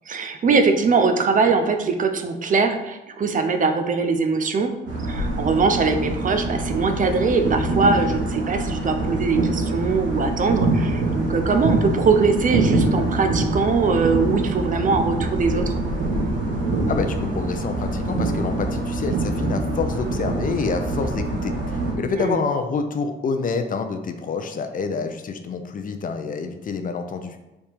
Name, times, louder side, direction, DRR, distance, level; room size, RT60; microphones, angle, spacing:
voice 1, 0.1-4.7 5.0-15.7 22.1-22.4, right 4 dB, 40° right, 7 dB, 0.5 m, -21 dB
sound 1, 4.9-21.9, right 2 dB, 75° right, 1.3 m, -24 dB
voice 2, 16.9-27.4, left 5 dB, 45° left, 7 dB, 0.4 m, -27 dB
3.4 x 2.8 x 4.4 m, 1.0 s
cardioid pair, 90°, 20 cm